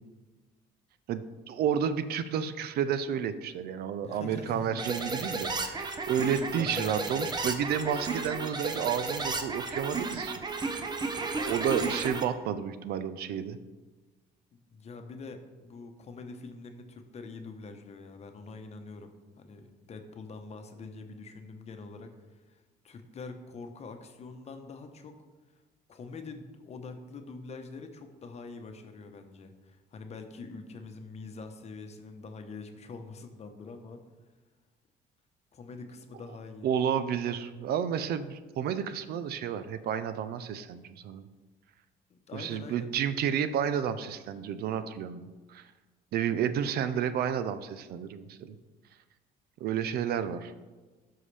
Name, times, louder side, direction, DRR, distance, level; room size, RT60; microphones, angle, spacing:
voice 1, 1.1-10.9 11.5-13.6 36.6-41.2 42.3-45.7 46.1-48.6 49.6-50.5, right 8 dB, 65° right, 12 dB, 0.5 m, -31 dB
voice 2, 4.0-4.9 6.0-7.3 14.5-25.2 25.9-34.0 35.5-36.7 42.1-42.9, left 4 dB, 40° left, 6 dB, 0.9 m, -45 dB
sound 1, 4.8-12.2, right 3 dB, 25° right, 0.8 m, -33 dB
12.5 x 5.7 x 3.3 m, 1.3 s
cardioid pair, 110°, 17 cm